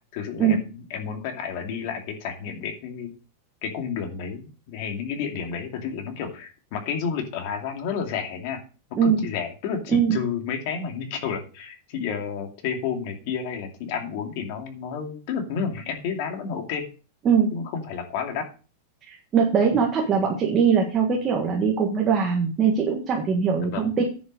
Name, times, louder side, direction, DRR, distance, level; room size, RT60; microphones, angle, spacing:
voice 1, 0.1-3.1 3.6-8.6 9.0-16.8 17.5-18.4 23.6-23.9, left 6 dB, 45° left, 4 dB, 2.4 m, -31 dB
voice 2, 19.1-24.0, right 6 dB, 20° right, 0 dB, 1.7 m, -21 dB
10.0 x 6.1 x 6.5 m, 0.36 s
supercardioid pair, 175°, 0 cm